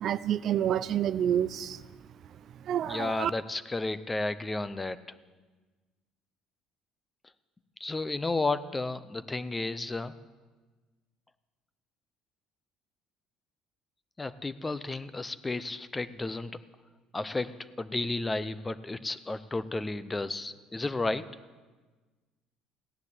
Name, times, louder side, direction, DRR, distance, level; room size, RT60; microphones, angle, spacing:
voice 1, 0.0-1.8 2.7-3.3, right 10 dB, 50° right, 0.5 m, -28 dB
voice 2, 2.8-5.0 7.8-10.1 14.2-16.6 17.1-21.3, left 2 dB, 15° left, 0.6 m, -32 dB
16.5 x 10.5 x 8.2 m
cardioid pair, 130°, 0 cm